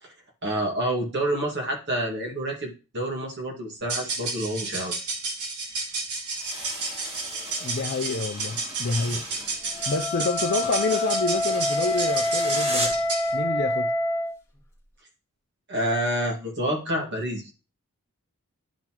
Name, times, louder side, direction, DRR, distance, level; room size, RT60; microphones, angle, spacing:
voice 1, 0.4-4.9 15.7-17.5, right 1 dB, 50° right, 2.0 m, -28 dB
sound 1, 3.8-13.3, right 3 dB, 85° right, 1.9 m, -32 dB
sound 2, 6.3-13.1, equal, 25° right, 1.9 m, -37 dB
voice 2, 7.6-9.2 9.9-12.9 13.3-13.9, left 3 dB, 50° left, 0.5 m, -28 dB
Wind instrument woodwind instrument, 9.7-14.4, left 1 dB, 15° left, 1.7 m, -26 dB
11.5 x 4.0 x 3.0 m
head